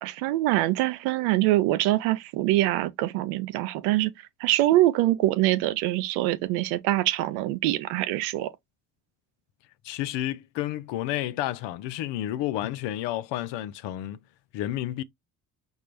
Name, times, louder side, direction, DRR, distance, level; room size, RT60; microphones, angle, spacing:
voice 1, 0.0-4.1 4.4-8.5, right 16 dB, 75° right, 0.6 m, -24 dB
voice 2, 9.8-14.2 14.5-15.0, left 13 dB, 60° left, 0.6 m, -30 dB
5.3 x 2.3 x 3.0 m
hypercardioid pair, 45°, 48 cm